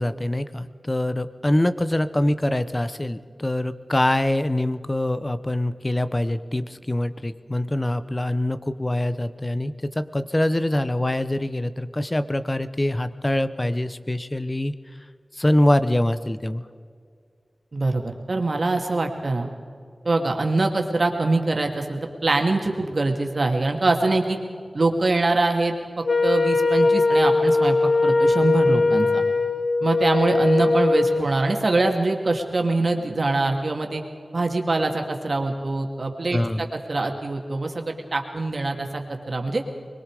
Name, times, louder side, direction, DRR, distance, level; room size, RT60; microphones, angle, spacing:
voice 1, 0.0-14.7 15.4-16.6 36.3-36.6, left 1 dB, 25° left, 12 dB, 1.0 m, -24 dB
voice 2, 17.7-19.5 20.0-24.4 24.7-25.7 26.2-27.8 28.0-29.2 29.8-34.0 34.3-39.0 39.3-39.6, right 2 dB, 65° right, 3 dB, 2.6 m, -23 dB
Wind instrument woodwind instrument, 26.0-31.3, left 3 dB, 75° left, 1.2 m, -20 dB
25.0 x 22.0 x 5.0 m, 2.2 s
wide cardioid pair, 55°, 0 cm